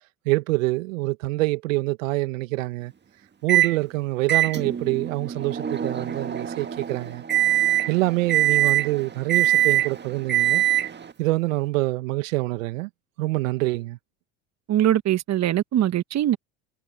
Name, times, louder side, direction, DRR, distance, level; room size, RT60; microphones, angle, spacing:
voice 1, 0.2-2.9 3.4-7.2 7.9-10.6 11.2-12.9 13.2-14.0, right 20 dB, 80° right, 1.8 m, -25 dB
Microwave oven, 3.5-3.8 4.3-11.1, right 13 dB, 25° right, 1.7 m, -23 dB
voice 2, 14.7-16.4, right 12 dB, 45° right, 1.2 m, -22 dB
hypercardioid pair, 75°, 39 cm